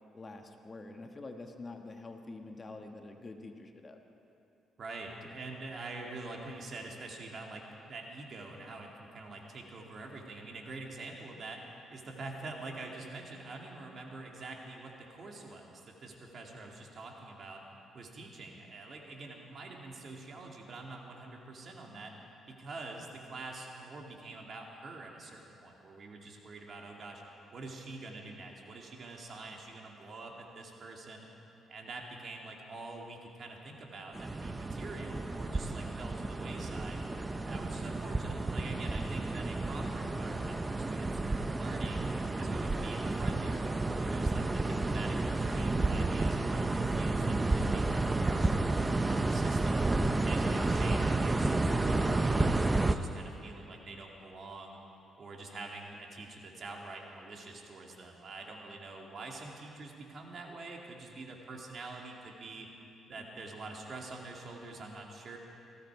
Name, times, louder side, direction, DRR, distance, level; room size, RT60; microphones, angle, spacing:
voice 1, 0.1-4.0 63.2-63.3, left 2 dB, 30° left, 4 dB, 1.2 m, -46 dB
voice 2, 4.8-17.6 17.9-22.1 22.5-27.2 27.5-31.3 31.7-37.0 37.4-42.1 42.4-49.9 50.2-54.8 55.2-62.7 63.1-65.4, right 3 dB, 50° right, 0 dB, 2.4 m, -46 dB
sound 1, 34.1-53.0, right 2 dB, 20° right, 0.7 m, -31 dB
19.5 x 15.5 x 4.8 m, 2.8 s
cardioid pair, 90°, 0 cm